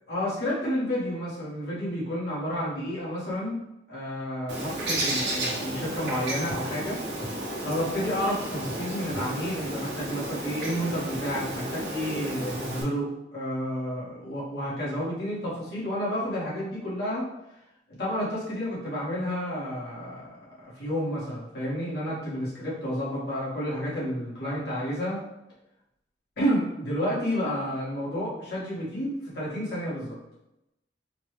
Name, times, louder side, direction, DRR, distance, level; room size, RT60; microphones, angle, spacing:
voice 1, 0.1-3.6 3.9-7.0 7.6-17.3 18.0-25.2 26.4-30.2, equal, 65° left, -7 dB, 1.4 m, -30 dB
Bird, 4.5-12.8, right 1 dB, 65° right, 1.0 m, -32 dB
3.9 x 2.3 x 3.2 m, 0.89 s
head